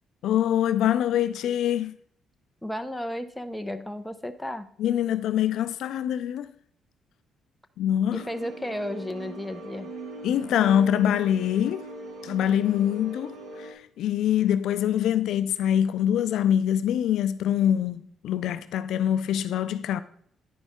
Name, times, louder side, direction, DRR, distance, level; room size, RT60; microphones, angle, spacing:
voice 1, 0.2-2.0 4.8-6.5 7.8-8.2 10.2-11.9 12.2-20.0, left 10 dB, 80° left, 0.4 m, -24 dB
voice 2, 2.6-4.7 8.1-9.9, left 1 dB, 5° left, 0.8 m, -33 dB
sound 1, 8.1-13.7, right 1 dB, 75° right, 2.4 m, -40 dB
10.0 x 5.1 x 3.6 m
cardioid pair, 90°, 0 cm